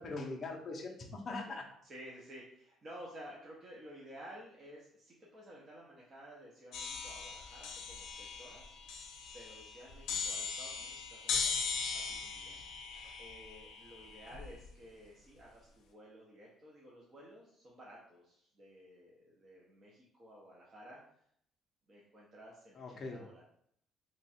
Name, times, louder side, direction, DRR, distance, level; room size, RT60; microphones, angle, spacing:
voice 1, 0.0-1.6 22.8-23.2, left 3 dB, 30° left, 0 dB, 0.6 m, -41 dB
voice 2, 1.4-8.7 9.3-11.6 11.9-12.5 13.2-21.0 21.9-23.4, equal, 25° right, -5 dB, 0.7 m, -54 dB
sound 1, 6.7-14.7, left 5 dB, 70° left, 0.6 m, -39 dB
2.9 x 2.3 x 4.2 m, 0.67 s
cardioid pair, 170°, 0 cm